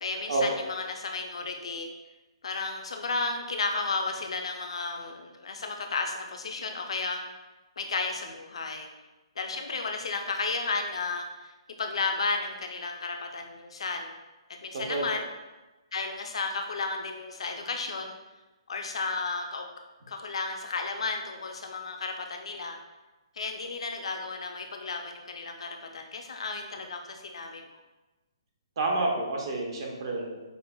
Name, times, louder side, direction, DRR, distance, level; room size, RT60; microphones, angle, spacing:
voice 1, 0.0-1.9 2.4-7.2 7.8-8.9 9.4-11.5 11.8-14.1 14.6-15.2 15.9-18.2 18.7-19.7 20.1-22.8 23.4-27.7, left 4 dB, 75° left, 4 dB, 0.5 m, -33 dB
voice 2, 28.8-30.4, right 2 dB, 55° right, 0 dB, 0.7 m, -29 dB
5.1 x 2.0 x 2.2 m, 1.1 s
hypercardioid pair, 150°, 3 cm